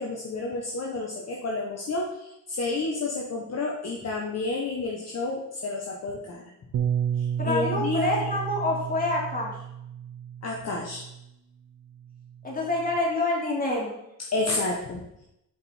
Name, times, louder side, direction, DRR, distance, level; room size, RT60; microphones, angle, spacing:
voice 1, 0.0-6.4 7.2-8.2 10.4-11.0 14.3-15.0, left 3 dB, 50° left, -1 dB, 1.3 m, -30 dB
Bass guitar, 6.7-11.2 12.0-13.0, right 8 dB, 60° right, 0.7 m, -32 dB
voice 2, 7.4-9.5 12.4-13.9, left 2 dB, 25° left, -3 dB, 3.2 m, -27 dB
7.4 x 5.3 x 4.4 m, 0.83 s
cardioid pair, 85°, 33 cm